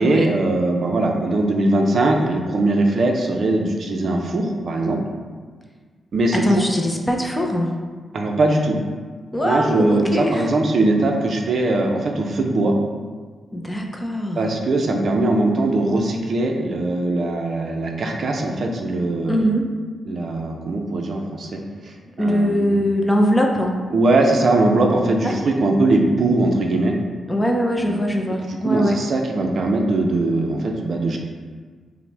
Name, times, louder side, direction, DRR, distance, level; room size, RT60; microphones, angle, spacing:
voice 1, 0.0-5.0 6.1-6.6 8.1-8.8 9.4-12.7 14.4-19.4 20.1-22.8 23.9-26.9 27.8-28.0 28.5-31.2, right 2 dB, 55° right, 2 dB, 0.5 m, -20 dB
voice 2, 6.3-7.7 9.3-10.5 13.5-14.4 19.3-19.7 22.2-23.8 25.2-25.3 27.3-29.0, equal, 10° left, 1 dB, 0.4 m, -21 dB
5.6 x 2.1 x 3.3 m, 1.5 s
wide cardioid pair, 125°, 0 cm